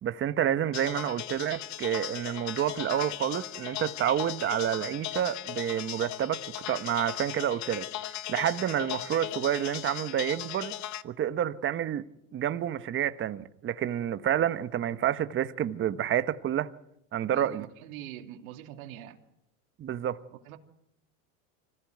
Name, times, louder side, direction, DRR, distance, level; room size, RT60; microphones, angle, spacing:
voice 1, 0.0-6.4 6.7-7.9 8.3-10.7 11.0-12.0 12.3-16.7 17.1-17.6 19.8-20.2, right 10 dB, 30° right, 1.1 m, -29 dB
sound 1, 0.7-11.0, left 13 dB, 40° left, 1.2 m, -38 dB
voice 2, 17.3-19.2 20.4-20.6, right 12 dB, 75° right, 2.8 m, -43 dB
25.5 x 16.0 x 9.4 m
supercardioid pair, 125°, 42 cm